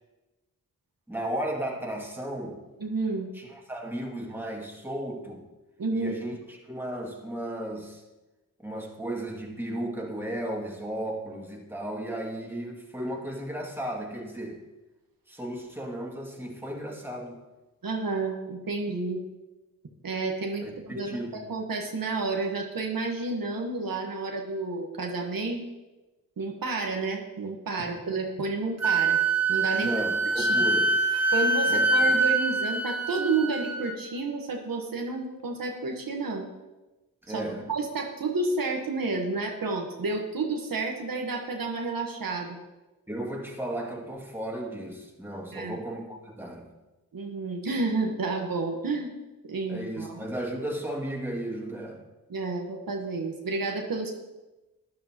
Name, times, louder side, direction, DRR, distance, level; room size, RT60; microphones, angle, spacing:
voice 1, 1.1-2.6 3.3-5.5 5.9-8.0 8.6-14.6 15.3-17.4 20.6-21.5 29.8-31.0 31.7-32.2 37.2-37.7 43.1-46.7 49.7-52.0, right 1 dB, 5° right, -1 dB, 2.4 m, -35 dB
voice 2, 2.8-3.3 5.8-6.1 17.8-19.2 20.0-25.6 26.4-29.2 29.5-30.0 30.4-30.6 31.3-36.5 37.3-42.6 45.5-45.8 47.1-49.1 49.4-50.1 52.3-54.1, right 3 dB, 80° right, 2 dB, 1.4 m, -30 dB
Wind instrument woodwind instrument, 28.8-34.0, right 3 dB, 50° right, 1.1 m, -24 dB
12.5 x 10.5 x 3.0 m, 1.1 s
cardioid pair, 50°, 34 cm